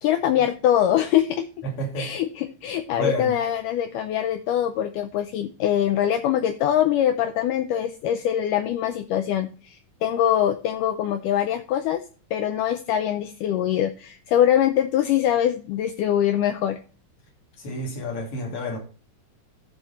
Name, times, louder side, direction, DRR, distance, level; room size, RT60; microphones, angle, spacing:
voice 1, 0.0-1.5 2.0-12.0 12.3-16.8, left 10 dB, 85° left, 1.9 m, -23 dB
voice 2, 1.6-2.1 3.0-3.3 17.6-18.8, left 1 dB, 40° left, 2.9 m, -29 dB
13.0 x 4.7 x 4.2 m
omnidirectional pair, 4.3 m